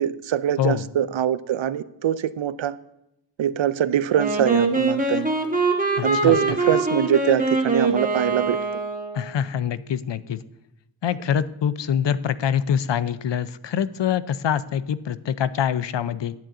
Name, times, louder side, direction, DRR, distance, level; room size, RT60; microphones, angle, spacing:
voice 1, 0.0-2.8 3.4-5.3 6.0-8.6, right 10 dB, 75° right, 0.5 m, -23 dB
Wind instrument woodwind instrument, 4.1-9.3, right 2 dB, 20° right, 1.2 m, -23 dB
voice 2, 6.0-6.4 9.1-10.4 11.0-16.3, left 8 dB, 65° left, 0.5 m, -25 dB
10.5 x 9.1 x 3.7 m
wide cardioid pair, 90°, 46 cm